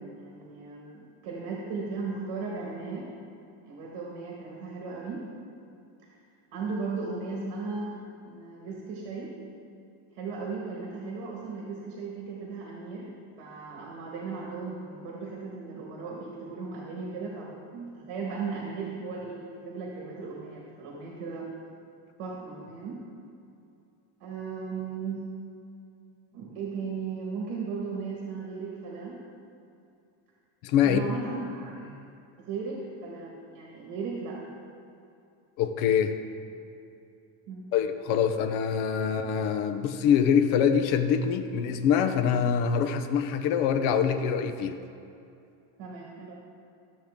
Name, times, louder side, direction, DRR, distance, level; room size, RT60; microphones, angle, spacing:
voice 1, 0.0-3.1 3.6-5.2 6.5-8.0 8.2-9.3 10.1-21.5 22.2-23.0 24.2-25.3 26.3-29.2 30.8-31.9 32.4-34.5 37.5-37.7 45.8-46.4, right 4 dB, 55° right, -2 dB, 1.6 m, -36 dB
voice 2, 30.6-31.0 35.6-36.2 37.7-44.8, left 7 dB, 70° left, 7 dB, 0.8 m, -24 dB
13.0 x 7.4 x 3.6 m, 2.6 s
cardioid pair, 175°, 48 cm